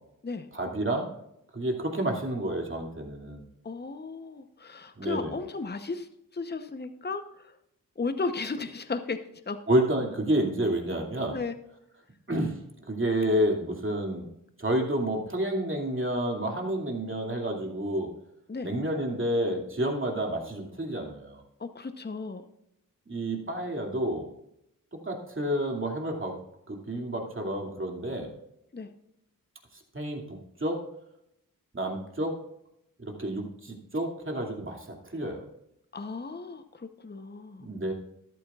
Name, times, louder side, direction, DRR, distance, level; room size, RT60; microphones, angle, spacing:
voice 1, 0.5-1.1 1.5-3.5 5.0-5.4 9.7-11.4 12.3-12.6 12.9-14.3 14.6-18.1 18.6-21.4 23.1-24.3 25.0-26.4 26.7-28.3 29.7-30.8 31.7-32.3 33.0-35.4 37.6-37.9, right 1 dB, 35° right, 1 dB, 2.5 m, -29 dB
voice 2, 3.6-6.1 6.3-7.5 8.0-9.2 9.5-9.6 11.3-11.5 18.5-18.7 21.6-22.4 28.7-28.9 35.9-37.7, left 4 dB, 30° left, 9 dB, 0.9 m, -35 dB
13.5 x 11.5 x 2.4 m, 0.79 s
cardioid pair, 50°, 33 cm